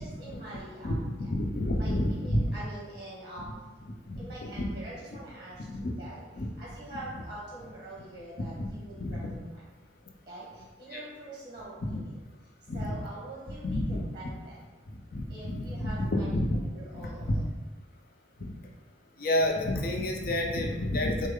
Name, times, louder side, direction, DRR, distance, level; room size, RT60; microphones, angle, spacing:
voice 1, 0.0-1.1 1.8-3.5 4.2-6.2 6.6-9.6 10.3-12.1 12.7-14.6 15.3-16.4 16.7-17.4, right 1 dB, 25° right, -7 dB, 1.2 m, -44 dB
voice 2, 0.8-2.5 4.1-4.7 5.7-5.9 6.4-6.5 8.4-8.7 9.0-9.4 10.9-11.0 11.8-12.0 12.7-13.0 13.6-14.0 15.1-16.6 16.9-17.4 18.4-18.5 19.2-21.3, left 1 dB, 50° left, 1 dB, 0.6 m, -30 dB
6.4 x 2.2 x 3.7 m, 1.2 s
head